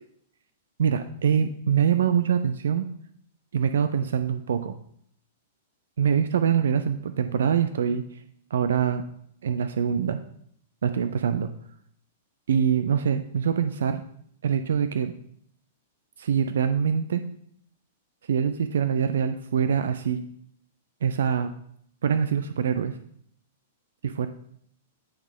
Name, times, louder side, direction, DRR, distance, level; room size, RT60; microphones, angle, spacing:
voice 1, 0.8-2.8 3.5-4.8 6.0-8.0 8.5-9.0 9.4-10.2 10.8-11.5 12.5-14.0 14.4-15.1 16.2-17.2 18.3-20.2 21.0-21.5 22.0-23.0 24.0-24.3, right 7 dB, 65° right, 10 dB, 0.4 m, -24 dB
9.2 x 3.9 x 3.7 m, 0.67 s
figure-of-eight pair, 100°, 0 cm